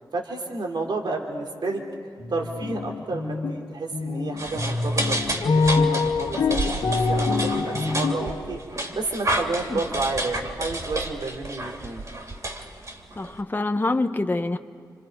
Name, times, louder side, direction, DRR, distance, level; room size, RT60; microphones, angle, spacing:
voice 1, 0.1-1.8 2.3-5.2 5.5-8.6 8.9-12.0, right 3 dB, 70° right, 1 dB, 2.9 m, -31 dB
sound 1, 1.7-3.6 3.9-8.4, left 3 dB, 90° left, 1.7 m, -25 dB
sound 2, 4.4-13.4, right 1 dB, 45° right, 3.2 m, -31 dB
voice 2, 13.2-14.6, left 2 dB, 25° left, 5 dB, 1.1 m, -25 dB
30.0 x 26.0 x 5.3 m, 2.2 s
cardioid pair, 60°, 8 cm